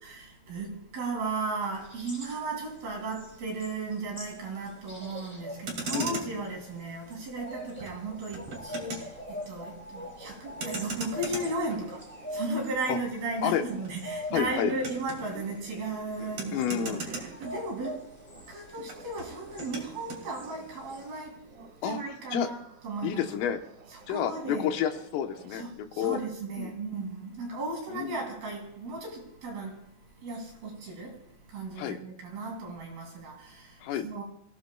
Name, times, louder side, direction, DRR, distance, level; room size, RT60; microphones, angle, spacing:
voice 1, 0.0-22.6 22.8-23.3 23.9-24.7 25.5-34.2, right 3 dB, 55° right, 4.7 m, -36 dB
sound 1, 1.6-21.2, equal, 5° left, 1.2 m, -44 dB
Motor vehicle (road), 5.5-18.1 18.4-20.3, right 3 dB, 35° right, 2.6 m, -41 dB
sound 2, 10.4-19.2 19.4-26.2, right 6 dB, 75° right, 3.9 m, -52 dB
voice 2, 14.3-14.7 16.2-17.0 21.8-22.0 22.3-22.5 23.0-23.6 24.1-26.2 26.6-26.7 27.9-28.2 31.8-32.0 33.8-34.1, left 9 dB, 85° left, 3.7 m, -30 dB
27.5 x 16.5 x 2.3 m
omnidirectional pair, 5.7 m